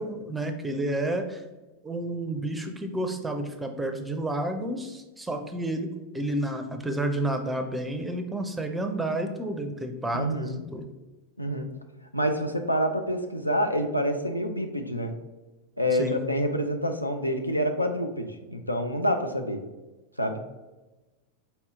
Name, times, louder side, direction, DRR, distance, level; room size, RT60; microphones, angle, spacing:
voice 1, 0.0-1.4 1.8-5.9 6.1-10.9 16.0-16.3, right 1 dB, 10° right, 6 dB, 0.5 m, -30 dB
voice 2, 10.1-10.6 11.4-11.7 12.1-15.1 15.8-19.6 20.2-20.4, equal, 85° left, 5 dB, 0.4 m, -27 dB
4.3 x 2.8 x 3.5 m, 1.1 s
figure-of-eight pair, 90°, 0 cm